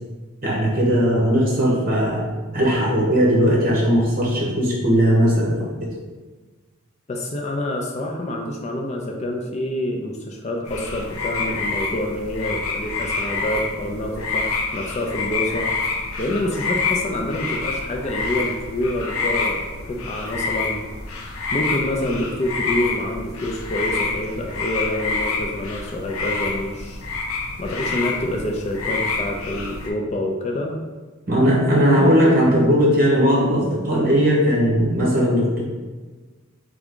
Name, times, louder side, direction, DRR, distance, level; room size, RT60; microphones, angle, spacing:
voice 1, 0.4-2.3 2.5-5.9 31.3-35.6, equal, 40° right, -3 dB, 1.1 m, -18 dB
voice 2, 7.1-15.7 16.2-20.8 21.5-27.0 27.6-30.8, left 1 dB, 30° left, 1 dB, 0.4 m, -27 dB
sound 1, 10.7-29.9, left 4 dB, 85° left, 0.6 m, -27 dB
3.5 x 3.5 x 3.7 m, 1.3 s
head